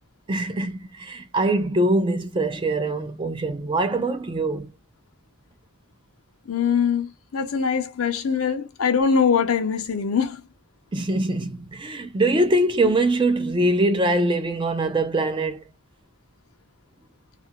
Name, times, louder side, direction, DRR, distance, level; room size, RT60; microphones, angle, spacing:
voice 1, 0.3-4.7 10.9-15.6, right 1 dB, 20° right, 0.4 m, -23 dB
voice 2, 6.5-10.4, left 6 dB, 80° left, 0.5 m, -22 dB
2.4 x 2.1 x 2.7 m
head